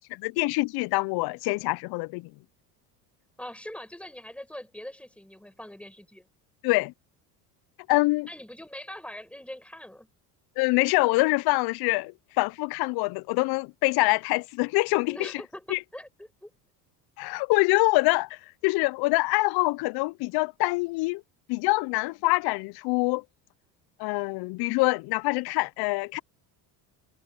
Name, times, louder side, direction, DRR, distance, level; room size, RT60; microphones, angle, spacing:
voice 1, 0.2-2.3 6.6-6.9 7.9-8.3 10.6-15.3 15.7-15.8 17.2-21.2 21.5-23.2 24.0-26.2, left 24 dB, 60° left, 0.5 m, -25 dB
voice 2, 3.4-6.3 8.3-10.1 15.1-16.5, left 1 dB, 5° left, 7.3 m, -42 dB
supercardioid pair, 95°, 44 cm